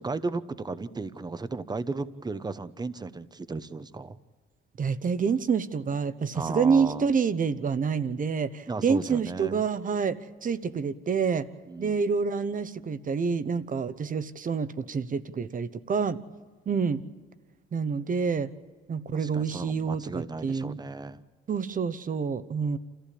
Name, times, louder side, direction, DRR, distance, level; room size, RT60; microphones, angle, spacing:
voice 1, 0.0-4.2 6.3-7.1 8.7-9.6 11.7-12.0 19.1-21.2, right 3 dB, 20° right, 14 dB, 0.9 m, -35 dB
voice 2, 4.8-10.2 10.4-11.4 11.8-16.2 16.7-17.0 17.7-18.5 18.9-20.8 21.5-22.8, right 5 dB, 45° right, 14 dB, 1.1 m, -27 dB
28.0 x 15.0 x 8.5 m, 1.5 s
cardioid pair, 90°, 20 cm